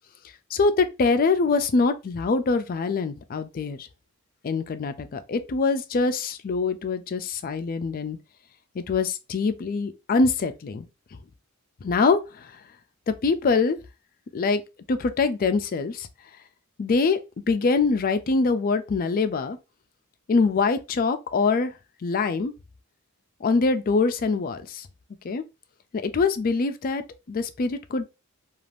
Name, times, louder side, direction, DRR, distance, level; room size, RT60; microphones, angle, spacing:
voice 1, 0.5-3.9 4.4-8.2 8.8-10.9 11.8-12.5 13.1-13.8 14.3-14.6 14.9-16.1 16.8-17.2 17.5-19.6 20.3-21.7 22.0-22.5 23.4-24.9 25.2-25.4 25.9-28.1, left 4 dB, 40° left, 0.4 m, -24 dB
2.5 x 2.4 x 3.3 m
head